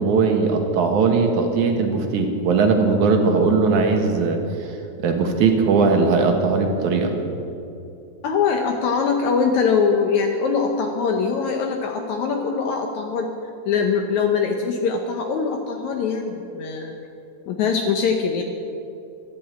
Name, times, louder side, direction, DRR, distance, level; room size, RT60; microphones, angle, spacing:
voice 1, 0.0-4.7 5.0-7.1, right 4 dB, 75° right, 3 dB, 2.9 m, -19 dB
voice 2, 8.2-13.3 13.7-16.9 17.5-18.4, left 5 dB, 75° left, 3 dB, 2.2 m, -22 dB
12.5 x 11.5 x 8.8 m, 2.7 s
omnidirectional pair, 3.5 m